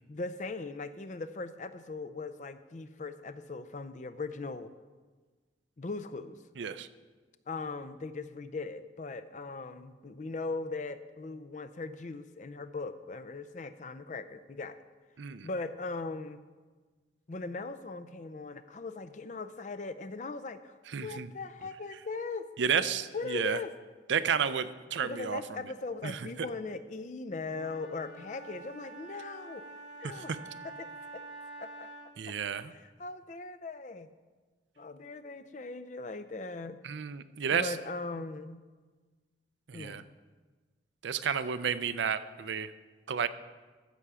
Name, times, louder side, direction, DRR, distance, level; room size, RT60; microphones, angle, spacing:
voice 1, 0.1-4.7 5.8-6.4 7.5-14.8 15.4-16.4 17.3-22.5 23.1-23.7 25.0-29.6 30.0-30.3 30.6-31.2 31.6-31.9 32.3-32.4 32.7-34.1 34.8-36.8 37.5-38.6 39.7-40.1, left 3 dB, 40° left, 12 dB, 0.5 m, -39 dB
voice 2, 6.6-6.9 15.2-15.5 20.9-21.3 22.6-23.6 24.1-25.4 26.0-26.3 30.3-30.4 32.2-32.7 36.8-37.8 39.7-40.0 41.0-42.7 43.1-43.3, right 7 dB, 75° right, 12 dB, 0.5 m, -31 dB
Wind instrument woodwind instrument, 27.4-32.3, right 2 dB, 80° left, 3.3 m, -47 dB
14.5 x 6.8 x 4.9 m, 1.4 s
head